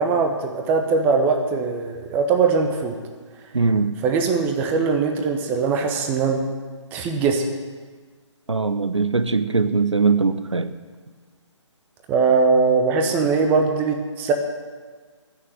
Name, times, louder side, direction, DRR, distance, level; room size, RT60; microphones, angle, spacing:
voice 1, 0.0-2.9 4.0-6.5 6.9-7.4 12.1-14.3, right 4 dB, 10° right, 4 dB, 0.9 m, -21 dB
voice 2, 3.5-3.9 8.5-10.7, right 4 dB, 70° right, 12 dB, 0.9 m, -21 dB
15.5 x 6.6 x 9.8 m, 1.5 s
figure-of-eight pair, 145°, 16 cm